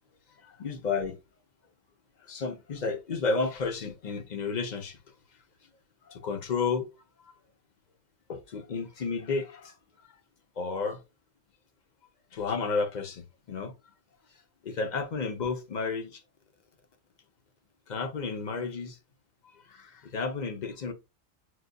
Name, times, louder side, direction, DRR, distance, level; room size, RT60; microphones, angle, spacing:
voice 1, 0.4-1.2 2.2-5.0 6.0-6.9 8.3-9.7 10.6-11.0 12.3-13.7 14.6-16.2 17.9-19.0 19.6-20.9, left 4 dB, 45° left, 0.7 m, -32 dB
6.1 x 2.6 x 2.2 m
omnidirectional pair, 1.3 m